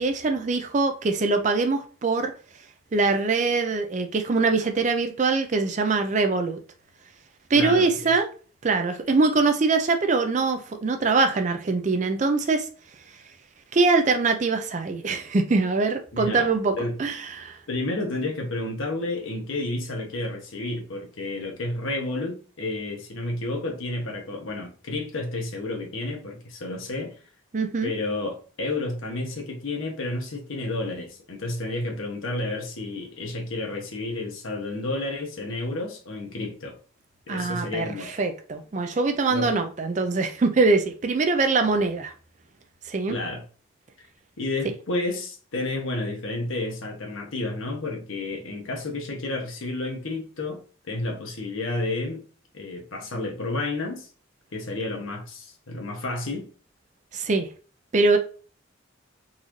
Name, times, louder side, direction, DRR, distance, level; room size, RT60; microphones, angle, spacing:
voice 1, 0.0-2.3 2.9-6.6 7.5-8.3 8.6-12.7 13.7-17.6 27.5-27.9 37.3-42.1 42.8-43.2 57.1-57.5 57.9-58.2, right 3 dB, 35° right, 0.4 m, -23 dB
voice 2, 7.5-7.9 16.1-16.5 16.8-17.0 17.7-27.2 27.8-36.8 37.3-38.1 39.3-39.5 43.1-43.4 44.4-52.2 52.5-54.1 54.5-56.5, left 2 dB, 80° left, 1.0 m, -31 dB
4.0 x 2.5 x 3.0 m
head